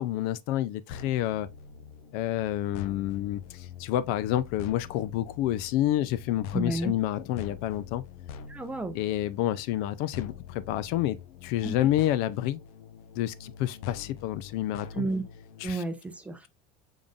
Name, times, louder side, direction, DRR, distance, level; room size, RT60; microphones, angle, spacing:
voice 1, 0.0-1.5 2.1-8.0 8.9-11.2 11.4-12.6 13.2-15.0 15.6-15.8, left 13 dB, 55° left, 0.4 m, -29 dB
sound 1, 0.9-15.7, left 8 dB, 90° left, 0.7 m, -44 dB
voice 2, 6.5-6.9 8.5-9.0 11.6-11.7 14.9-15.2 15.6-16.5, right 2 dB, 5° right, 0.5 m, -31 dB
5.3 x 3.6 x 2.5 m
cardioid pair, 170°, 19 cm